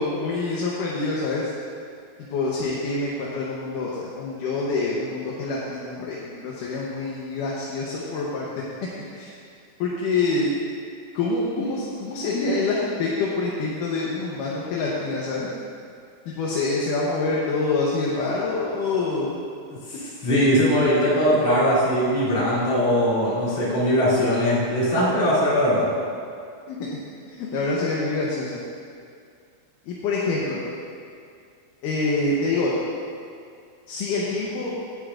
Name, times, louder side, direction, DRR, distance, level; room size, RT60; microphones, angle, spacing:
voice 1, 0.0-1.5 2.3-8.5 9.1-9.3 9.8-10.5 11.1-15.5 16.3-19.4 26.7-27.0 27.3-28.6 29.9-30.6 31.8-32.7 33.9-34.7, left 3 dB, 70° left, -5 dB, 2.5 m, -26 dB
voice 2, 20.2-25.9, equal, 45° left, -9 dB, 3.6 m, -20 dB
16.0 x 9.5 x 2.5 m, 2.3 s
omnidirectional pair, 4.1 m